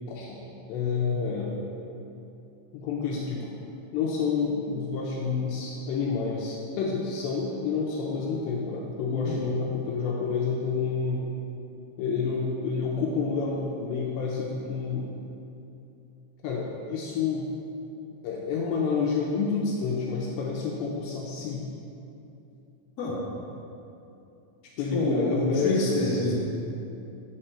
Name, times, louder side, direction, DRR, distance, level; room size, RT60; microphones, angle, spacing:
voice 1, 0.1-0.4 0.7-1.6 2.7-3.5 3.9-11.3 12.0-15.1 16.4-17.5 18.2-21.6 24.8-26.2, left 5 dB, 80° left, -3 dB, 2.6 m, -29 dB
voice 2, 9.1-9.4 23.0-23.2 24.9-26.3, left 2 dB, 60° left, -9 dB, 0.9 m, -27 dB
9.4 x 6.5 x 4.3 m, 2.8 s
omnidirectional pair, 5.7 m